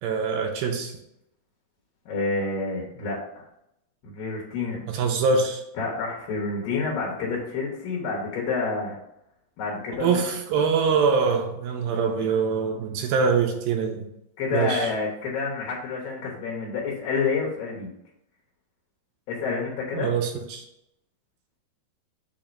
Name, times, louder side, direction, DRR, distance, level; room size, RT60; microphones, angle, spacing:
voice 1, 0.0-0.9 4.9-5.6 10.0-14.0 14.5-14.9 19.9-20.6, right 5 dB, 80° right, 3 dB, 2.4 m, -24 dB
voice 2, 2.1-3.4 4.0-4.8 5.8-9.0 9.6-10.2 14.4-17.9 19.3-20.1, left 4 dB, 70° left, -3 dB, 2.8 m, -28 dB
7.1 x 2.9 x 5.0 m, 0.81 s
omnidirectional pair, 4.4 m